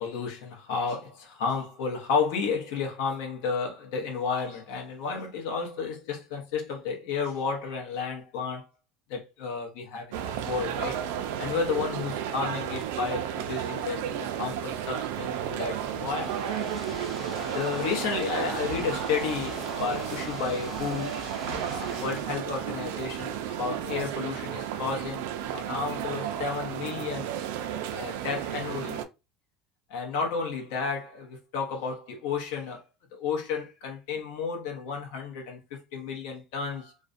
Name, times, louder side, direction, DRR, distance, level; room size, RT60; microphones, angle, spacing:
voice 1, 0.0-8.7 9.1-11.1 11.4-16.6 17.5-21.2 21.5-27.3 27.9-29.0 29.9-32.8 33.1-36.9, left 5 dB, 65° left, 0.8 m, -32 dB
sound 1, 10.1-29.0, right 10 dB, 80° right, 0.3 m, -33 dB
sound 2, 15.9-22.2, left 2 dB, 5° left, 1.0 m, -41 dB
2.4 x 2.1 x 2.5 m
cardioid pair, 180°, 0 cm